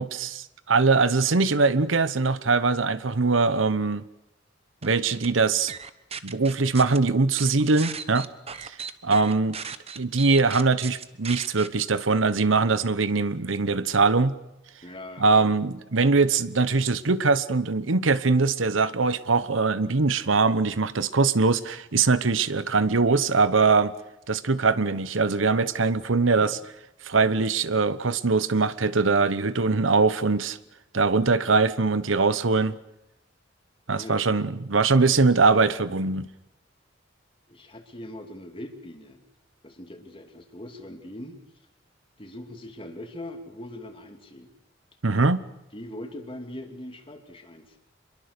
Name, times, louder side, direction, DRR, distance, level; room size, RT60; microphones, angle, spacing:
voice 1, 0.0-4.0 4.8-5.7 6.2-8.3 9.0-9.6 10.0-14.3 15.2-23.9 24.3-26.6 27.0-30.6 30.9-32.8 33.9-36.3 45.0-45.4, right 4 dB, 85° right, 14 dB, 1.0 m, -22 dB
sound 1, 4.8-5.3 5.7-7.0 7.4-11.7, right 6 dB, 30° right, 1.1 m, -36 dB
voice 2, 14.8-15.6 26.4-26.5 33.9-34.2 37.5-39.2 39.6-41.4 42.2-44.5 45.7-47.8, left 1 dB, 30° left, 4 dB, 2.7 m, -41 dB
26.0 x 23.0 x 6.8 m, 0.91 s
head